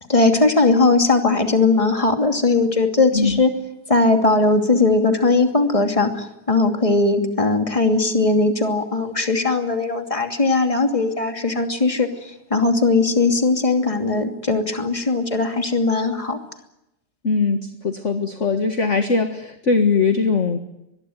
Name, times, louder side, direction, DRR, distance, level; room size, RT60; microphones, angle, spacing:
voice 1, 0.1-3.5 3.9-12.1 12.5-16.4, left 3 dB, 15° left, 4 dB, 2.8 m, -19 dB
voice 2, 17.2-20.6, left 4 dB, 35° left, 6 dB, 1.9 m, -20 dB
24.5 x 21.5 x 9.4 m, 0.88 s
omnidirectional pair, 2.3 m